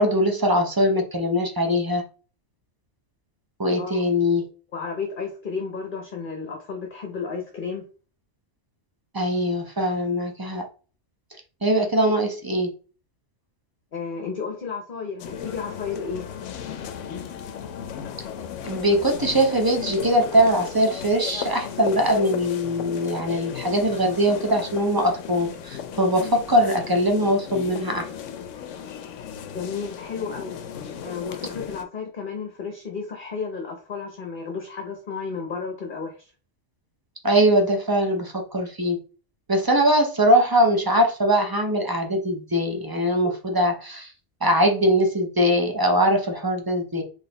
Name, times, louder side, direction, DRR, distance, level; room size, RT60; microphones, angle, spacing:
voice 1, 0.0-2.0 3.6-4.4 9.1-10.6 11.6-12.7 18.6-28.1 37.2-39.0 39.5-44.1 44.4-47.0, equal, 25° right, 3 dB, 0.6 m, -21 dB
voice 2, 4.7-7.8 13.9-16.2 29.5-30.6 31.0-36.3, left 5 dB, 45° left, 1 dB, 0.9 m, -32 dB
sound 1, 15.2-31.8, left 8 dB, 75° left, 0.9 m, -35 dB
4.0 x 3.2 x 3.9 m, 0.37 s
omnidirectional pair, 1.3 m